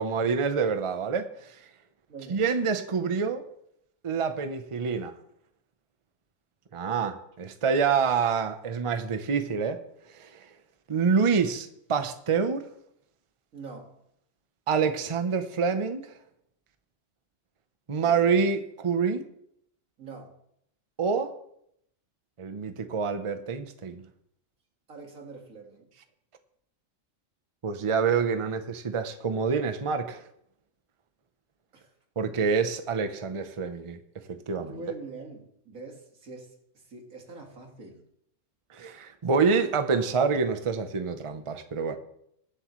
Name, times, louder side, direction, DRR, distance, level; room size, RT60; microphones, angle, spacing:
voice 1, 0.0-1.6 2.3-3.4 4.0-5.1 6.7-9.8 10.1-10.5 10.9-12.6 14.7-16.2 17.9-19.2 21.0-21.3 22.4-24.0 27.6-30.2 32.2-34.0 34.3-34.8 38.7-42.0, right 5 dB, 30° right, 0.7 m, -27 dB
voice 2, 2.1-2.4 13.5-14.0 18.0-18.3 20.0-20.4 24.9-25.9 31.7-31.9 34.6-36.5 36.9-38.0, right 3 dB, 85° right, 2.3 m, -44 dB
21.0 x 7.8 x 3.1 m
omnidirectional pair, 1.4 m